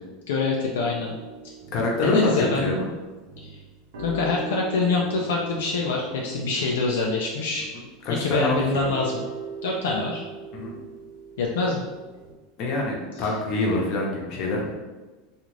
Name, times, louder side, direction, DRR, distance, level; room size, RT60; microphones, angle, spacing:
voice 1, 0.3-1.2 2.0-2.8 3.4-3.6 4.0-7.7 8.1-9.3 9.6-10.2 11.4-11.8 13.2-13.3, left 3 dB, 85° left, -2 dB, 0.3 m, -25 dB
sound 1, 0.7-12.3, right 4 dB, 80° right, 0.7 m, -40 dB
voice 2, 1.7-2.9 8.0-8.8 10.5-10.7 12.6-14.8, left 2 dB, 55° left, -1 dB, 0.8 m, -25 dB
2.5 x 2.4 x 3.1 m, 1.2 s
supercardioid pair, 115°, 0 cm